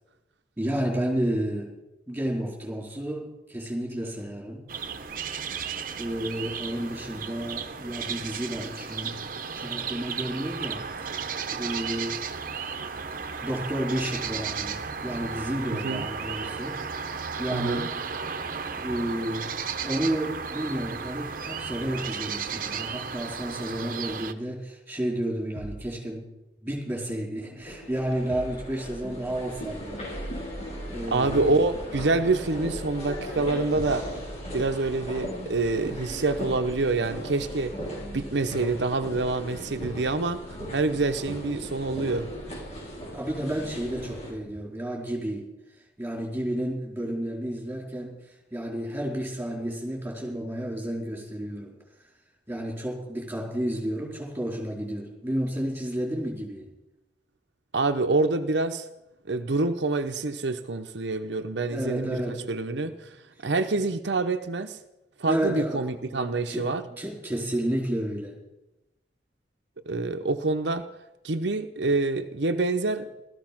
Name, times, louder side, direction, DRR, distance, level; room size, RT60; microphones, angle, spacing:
voice 1, 0.6-1.7 2.1-4.7 6.0-9.2 9.5-11.2 11.5-12.2 13.4-16.8 17.4-18.1 18.7-19.5 19.8-26.3 26.6-30.0 30.9-31.5 43.1-45.5 46.0-48.1 48.5-51.7 52.5-56.7 61.7-62.5 62.8-62.9 65.3-68.4, right 1 dB, 10° right, -1 dB, 4.3 m, -31 dB
sound 1, 4.7-24.3, right 6 dB, 50° right, 1.0 m, -34 dB
voice 2, 15.7-16.1 17.5-17.9 31.1-34.1 34.5-37.7 38.1-42.3 57.7-58.9 59.3-63.2 63.4-64.8 65.2-66.8 69.9-70.9 71.2-73.1, right 3 dB, 75° right, 7 dB, 0.8 m, -26 dB
sound 2, 25.5-25.9 28.3-28.7 31.2-31.6 33.8-34.1, right 1 dB, 70° left, 2.6 m, -40 dB
sound 3, 27.6-44.3, equal, 40° left, 5.8 m, -37 dB
16.5 x 14.0 x 6.0 m, 0.95 s
head